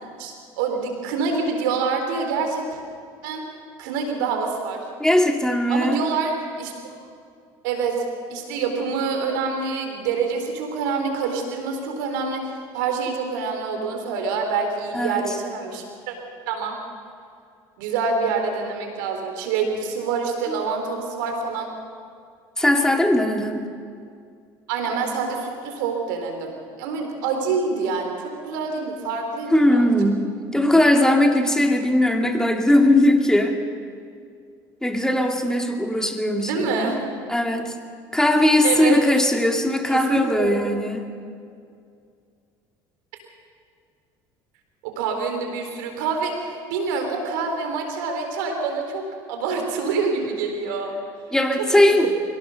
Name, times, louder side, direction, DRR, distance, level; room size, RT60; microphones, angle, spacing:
voice 1, 0.0-2.8 3.2-3.4 3.8-4.9 5.7-6.7 7.6-8.0 8.3-16.1 16.5-16.8 17.8-21.7 24.7-29.9 36.4-37.1 38.6-39.0 39.9-40.6 44.8-50.9 51.7-52.1, right 5 dB, 85° right, 4 dB, 4.0 m, -26 dB
voice 2, 5.0-6.0 14.9-15.2 20.5-20.6 22.6-23.7 29.5-33.6 34.8-37.0 37.3-37.7 38.1-41.1 51.3-52.1, left 1 dB, 5° left, 3 dB, 2.4 m, -19 dB
23.5 x 17.5 x 6.6 m, 2.3 s
supercardioid pair, 90°, 10 cm